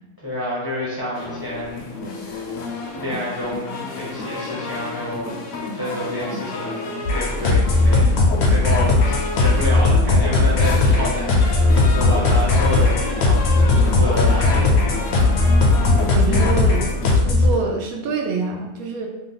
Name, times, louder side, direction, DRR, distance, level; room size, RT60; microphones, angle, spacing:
voice 1, 0.2-1.9 2.2-2.4 3.0-14.9, left 1 dB, 25° left, -7 dB, 0.5 m, -29 dB
sound 1, 1.1-17.2, left 3 dB, 70° left, 0.9 m, -31 dB
sound 2, 7.1-17.5, left 3 dB, 85° left, 1.1 m, -17 dB
voice 2, 16.1-19.1, right 4 dB, 80° right, 1 dB, 1.0 m, -26 dB
2.9 x 2.3 x 3.8 m, 1.1 s
omnidirectional pair, 1.5 m